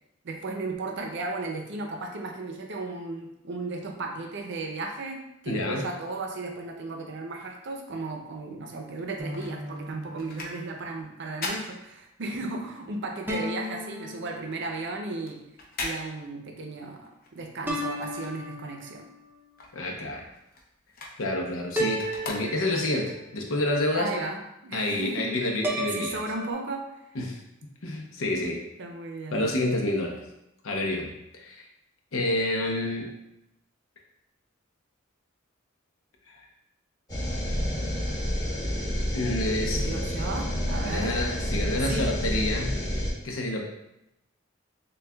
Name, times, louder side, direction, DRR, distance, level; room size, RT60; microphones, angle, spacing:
voice 1, 0.2-15.4 15.8-19.0 23.9-25.3 25.9-26.8 28.8-29.5 39.7-41.1 41.8-42.1, right 3 dB, 60° right, 2 dB, 0.6 m, -35 dB
voice 2, 5.5-5.9 19.7-20.2 21.2-24.1 24.7-26.2 27.1-27.4 27.8-28.6 29.3-30.2 30.6-31.6 32.1-33.1 36.3-36.4 39.1-39.8 40.8-42.8 43.2-43.6, left 1 dB, 85° left, 0 dB, 0.7 m, -28 dB
sound 1, 9.0-12.6 12.9-18.9 19.2-23.0 23.5-23.6, left 2 dB, 50° left, 0.7 m, -41 dB
sound 2, 9.2-10.9 13.3-15.0 17.7-19.2 21.8-23.4 25.6-26.5, equal, 10° right, 0.6 m, -34 dB
sound 3, 37.1-43.1, equal, 20° left, 1.1 m, -29 dB
6.3 x 2.3 x 2.3 m, 0.85 s
head